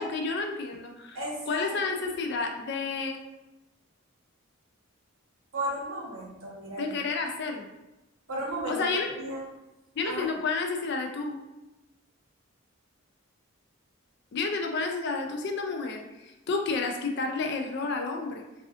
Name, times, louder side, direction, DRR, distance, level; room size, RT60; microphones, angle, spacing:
voice 1, 0.0-1.2 1.5-3.2 6.8-7.7 8.7-9.1 10.0-11.4 14.3-18.4, left 4 dB, 50° left, 4 dB, 0.4 m, -30 dB
voice 2, 1.1-2.1 5.5-6.9 8.3-8.8 9.2-9.4 10.0-10.3, right 1 dB, 75° right, -4 dB, 1.0 m, -34 dB
3.3 x 2.4 x 2.4 m, 1.0 s
head